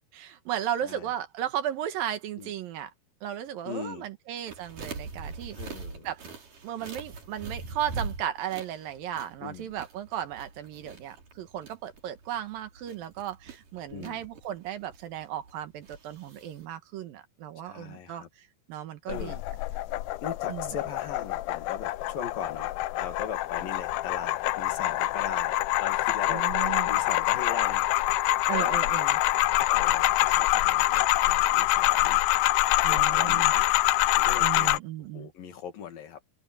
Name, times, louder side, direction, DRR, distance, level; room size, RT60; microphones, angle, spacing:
voice 1, 0.1-2.9 3.2-5.7 6.0-6.2 6.6-19.4 20.5-20.8 26.3-26.9 28.5-29.2 32.8-33.5 34.4-35.3, right 11 dB, 75° right, 2.9 m, -35 dB
voice 2, 3.7-4.1 5.6-6.1 9.4-9.7 13.9-14.2 17.6-18.3 19.1-19.4 20.2-22.7 23.0-27.9 28.5-28.8 29.6-32.3 32.9-33.7 34.2-34.8 35.1-36.2, left 7 dB, 65° left, 3.9 m, -39 dB
sound 1, 4.5-16.7, right 4 dB, 55° right, 6.2 m, -43 dB
sound 2, 19.1-34.8, left 16 dB, 85° left, 1.8 m, -25 dB
open air
omnidirectional pair, 4.3 m